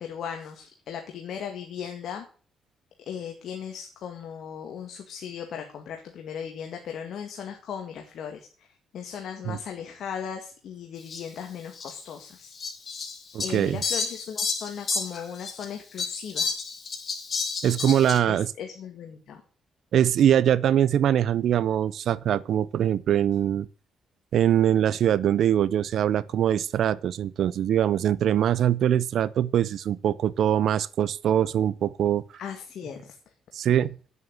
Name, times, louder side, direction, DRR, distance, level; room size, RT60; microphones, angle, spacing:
voice 1, 0.0-2.2 3.1-8.7 8.9-12.5 13.4-16.5 18.3-19.4 32.4-33.2, left 8 dB, 70° left, 2.0 m, -37 dB
Fowl, 11.1-11.2 11.8-11.9 12.6-15.7 16.0-18.2, left 4 dB, 45° left, 3.3 m, -30 dB
voice 2, 13.3-13.8 17.6-18.5 19.9-23.7 24.3-32.2 33.5-34.0, right 10 dB, 70° right, 0.7 m, -23 dB
9.5 x 8.1 x 7.9 m
cardioid pair, 90°, 0 cm